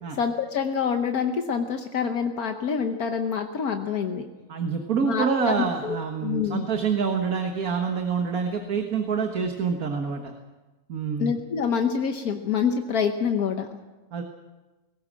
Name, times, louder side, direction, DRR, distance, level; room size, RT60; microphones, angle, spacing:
voice 1, 0.1-4.2 5.0-5.5 5.8-6.6 11.2-13.7, left 6 dB, 75° left, 5 dB, 1.5 m, -26 dB
voice 2, 4.5-10.3 10.9-11.3 14.1-14.2, right 6 dB, 70° right, 4 dB, 1.9 m, -26 dB
20.5 x 17.5 x 7.5 m, 1.2 s
omnidirectional pair, 1.6 m